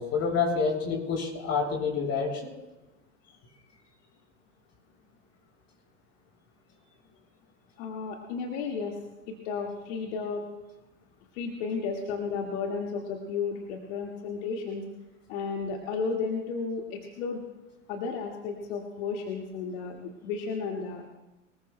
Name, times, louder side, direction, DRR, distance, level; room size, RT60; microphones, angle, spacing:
voice 1, 0.0-2.5, left 5 dB, 45° left, -1 dB, 7.2 m, -28 dB
voice 2, 7.8-9.0 9.3-10.4 11.3-14.8 15.3-17.4 17.9-21.1, left 5 dB, 65° left, 1 dB, 2.0 m, -33 dB
24.0 x 21.0 x 2.2 m, 1.0 s
hypercardioid pair, 90°, 37 cm